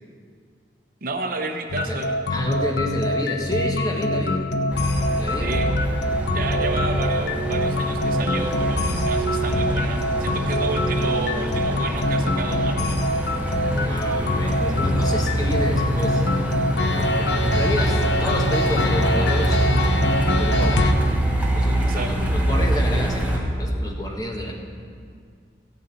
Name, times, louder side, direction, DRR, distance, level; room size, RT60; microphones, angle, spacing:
voice 1, 1.0-2.2 5.4-5.7 6.3-13.0 21.8-22.3, right 3 dB, 55° right, 5 dB, 0.8 m, -31 dB
sound 1, 1.7-20.9, left 1 dB, 65° left, 0.7 m, -24 dB
voice 2, 2.3-4.4 5.2-5.6 13.7-16.3 16.9-19.9 20.4-21.0 21.5-24.5, equal, 20° left, 1 dB, 1.3 m, -29 dB
Truck, 4.7-23.4, right 1 dB, 10° right, 1.4 m, -25 dB
14.5 x 5.2 x 8.3 m, 2.1 s
head